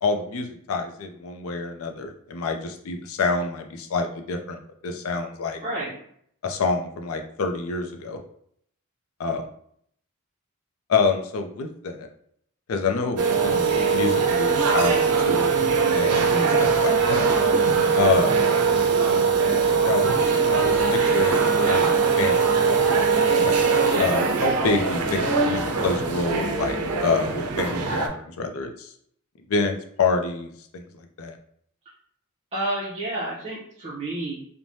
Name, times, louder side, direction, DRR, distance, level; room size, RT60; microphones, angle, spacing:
voice 1, 0.0-4.6 4.8-5.6 6.4-8.2 9.2-9.5 10.9-12.1 12.7-14.9 15.3-15.5 15.9-16.3 16.6-17.2 18.0-18.5 19.8-22.7 23.3-28.9 29.5-30.8 31.2-31.4, left 4 dB, 70° left, 5 dB, 0.4 m, -27 dB
voice 2, 5.6-6.0 16.3-16.7 23.9-24.1 32.5-34.3, right 1 dB, 30° right, -9 dB, 0.6 m, -30 dB
sound 1, 13.2-28.1, right 5 dB, 85° right, 0.5 m, -21 dB
3.1 x 2.1 x 2.6 m, 0.66 s
head